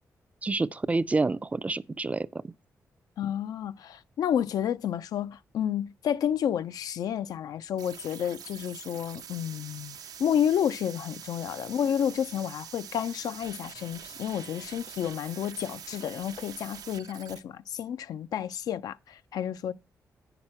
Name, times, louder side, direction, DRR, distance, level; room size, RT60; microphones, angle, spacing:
voice 1, 0.4-2.5, right 3 dB, 25° right, 0.4 m, -28 dB
voice 2, 3.2-19.7, left 9 dB, 85° left, 0.4 m, -30 dB
sound 1, 7.8-17.4, right 8 dB, 75° right, 0.5 m, -45 dB
8.8 x 5.9 x 4.3 m
cardioid pair, 80°, 6 cm